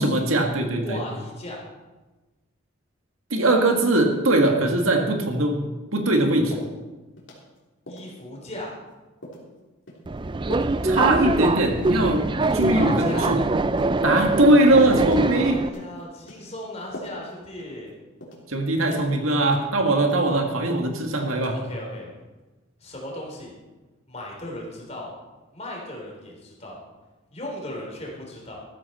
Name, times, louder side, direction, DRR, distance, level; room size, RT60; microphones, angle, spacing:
voice 1, 0.0-1.0 3.3-5.6 5.9-6.6 10.8-12.2 12.5-13.4 14.0-15.6 18.5-21.6, right 1 dB, 80° right, 3 dB, 1.9 m, -21 dB
voice 2, 0.8-1.7 7.9-8.8 12.5-13.3 15.2-17.9 21.5-22.1 22.8-23.5 24.1-25.1 25.5-26.8 27.3-28.6, left 1 dB, 30° left, -1 dB, 3.5 m, -36 dB
sound 1, 6.5-6.7 7.2-7.6 7.9-8.1 8.6-8.7 9.2-9.5 9.9-10.0 10.5-10.7 11.1-11.3 11.8-12.0 12.4-12.8 13.1-13.3 13.8-14.1 14.4-14.6 15.0-15.4 15.6-15.9 16.3-16.4 16.9-17.3 17.6-17.7 18.2-18.4 18.8-19.1 19.4-19.6 20.0-20.4 20.7-20.9 21.3-21.5, equal, 60° left, 3.3 m, -40 dB
Subway metro underground, 10.1-15.7, right 2 dB, 20° right, 0.3 m, -23 dB
14.0 x 13.5 x 4.3 m, 1.2 s
head